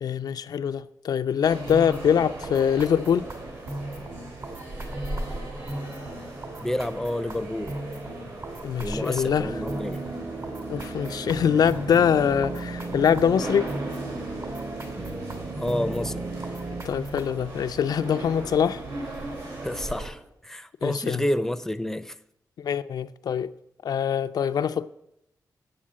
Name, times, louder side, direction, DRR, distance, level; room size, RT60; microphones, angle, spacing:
voice 1, 0.0-3.3 8.6-9.5 10.7-13.7 16.8-18.8 20.8-21.2 22.6-23.5 23.8-24.9, left 8 dB, 75° left, 0.4 m, -24 dB
sound 1, 1.4-20.1, right 2 dB, 65° right, 5.1 m, -38 dB
sound 2, 1.7-17.5, right 1 dB, 50° right, 2.5 m, -38 dB
voice 2, 6.6-7.8 8.8-10.0 15.5-16.2 19.6-22.2, left 1 dB, 5° left, 0.5 m, -29 dB
sound 3, 9.4-16.8, right 3 dB, 35° right, 0.8 m, -36 dB
8.7 x 7.3 x 7.3 m
cardioid pair, 75°, 7 cm